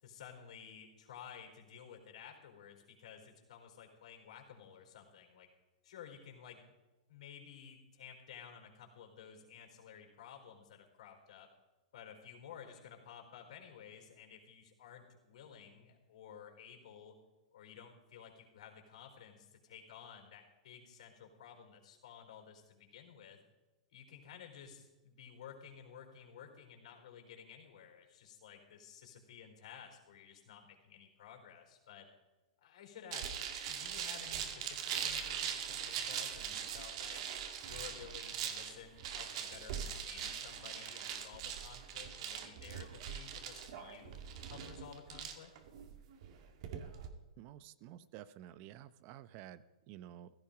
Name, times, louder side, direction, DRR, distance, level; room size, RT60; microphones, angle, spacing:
voice 1, 0.0-5.5 5.8-6.6 7.1-11.5 11.9-17.1 17.5-23.4 23.9-32.1 32.6-37.2 37.6-44.2 44.5-45.5, left 8 dB, 70° left, 3 dB, 4.5 m, -54 dB
sound 1, 33.1-47.1, right 8 dB, 55° right, 2.1 m, -41 dB
voice 2, 47.4-50.3, right 12 dB, 40° right, 15 dB, 0.8 m, -52 dB
16.0 x 14.0 x 5.2 m, 1.1 s
hypercardioid pair, 140°, 4 cm